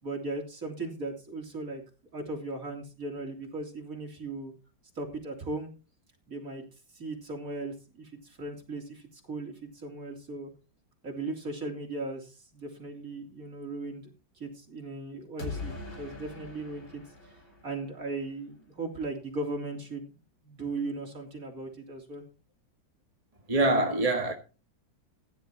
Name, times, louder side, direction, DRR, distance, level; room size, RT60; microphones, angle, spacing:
voice 1, 0.0-1.8 2.1-4.5 5.0-5.7 6.3-6.6 6.9-10.5 11.0-20.2 20.4-22.2, right 2 dB, 45° right, 3.6 m, -37 dB
sound 1, 15.4-18.3, left 4 dB, 90° left, 4.8 m, -42 dB
voice 2, 23.5-24.3, right 2 dB, 20° right, 1.6 m, -24 dB
15.5 x 11.0 x 2.9 m
omnidirectional pair, 2.1 m